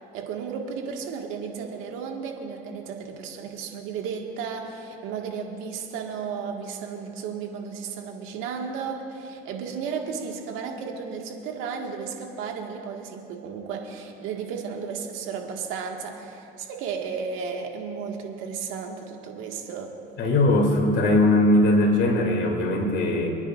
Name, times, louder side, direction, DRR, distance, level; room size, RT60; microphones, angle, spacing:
voice 1, 0.1-19.9, right 6 dB, 75° right, 2 dB, 1.8 m, -34 dB
voice 2, 20.2-23.4, left 1 dB, 60° left, 1 dB, 2.7 m, -20 dB
28.0 x 10.0 x 2.5 m, 2.8 s
supercardioid pair, 80°, 21 cm